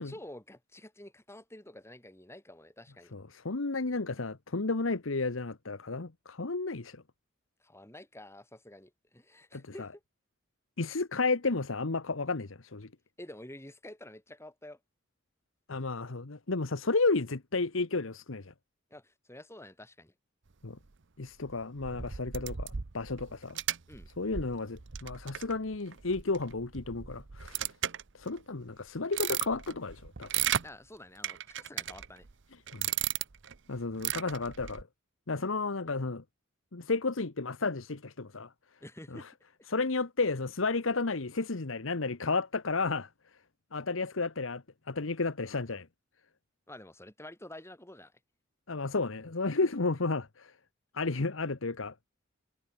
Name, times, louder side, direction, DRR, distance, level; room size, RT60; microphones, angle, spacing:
voice 1, 0.0-3.1 7.6-9.9 13.2-14.8 18.9-20.1 23.9-24.1 30.6-32.3 38.8-39.3 46.7-48.1, left 1 dB, 15° left, 6.1 m, -49 dB
voice 2, 3.1-7.0 9.5-9.9 10.8-12.9 15.7-18.5 20.6-20.8 21.2-23.6 24.2-27.7 28.1-30.3 32.7-32.9 33.7-34.9 35.3-36.2 36.7-38.5 39.1-39.3 39.7-43.1 43.7-45.9 48.7-50.5 50.9-51.9, left 3 dB, 85° left, 1.2 m, -32 dB
sound 1, 21.5-28.4 28.9-30.7 31.2-32.3 32.7-33.6 33.9-34.8, right 10 dB, 65° right, 0.9 m, -35 dB
head